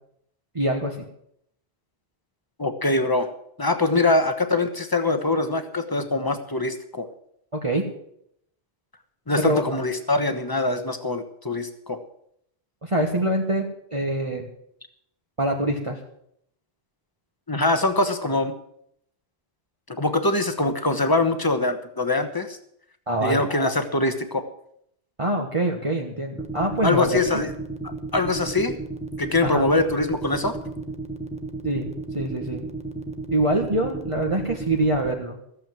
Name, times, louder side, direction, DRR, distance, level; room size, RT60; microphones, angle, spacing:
voice 1, 0.5-1.0 7.5-7.8 9.4-9.6 12.8-14.5 15.4-16.0 23.1-23.5 25.2-27.4 29.4-29.6 31.6-31.9 32.1-32.6 33.3-35.4, right 1 dB, 30° right, 0 dB, 1.4 m, -24 dB
voice 2, 2.6-3.3 3.6-7.1 9.3-12.0 17.5-18.6 19.9-22.6 23.2-24.4 26.8-27.5 28.1-28.7 29.2-30.6, left 2 dB, 20° left, 8 dB, 1.2 m, -23 dB
sound 1, 26.4-35.1, right 3 dB, 5° right, 1.0 m, -33 dB
15.0 x 7.6 x 7.6 m, 0.71 s
omnidirectional pair, 1.1 m